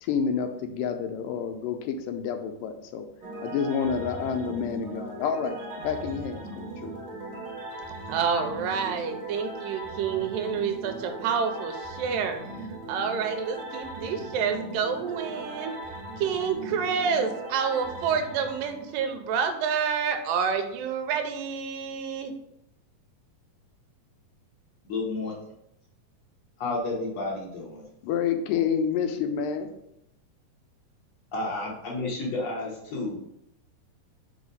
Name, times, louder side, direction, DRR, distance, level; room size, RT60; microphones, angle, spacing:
voice 1, 0.0-3.1 3.4-7.0 28.0-29.7, left 7 dB, 80° left, 6 dB, 2.2 m, -29 dB
sound 1, 3.2-19.3, right 2 dB, 65° right, 1.1 m, -39 dB
voice 2, 8.1-12.4 12.9-15.7 16.2-22.3, right 6 dB, 85° right, 6 dB, 2.4 m, -28 dB
voice 3, 24.8-25.3 26.6-27.9 31.3-33.3, left 2 dB, 60° left, -2 dB, 2.1 m, -31 dB
5.4 x 4.9 x 4.0 m, 0.79 s
omnidirectional pair, 3.9 m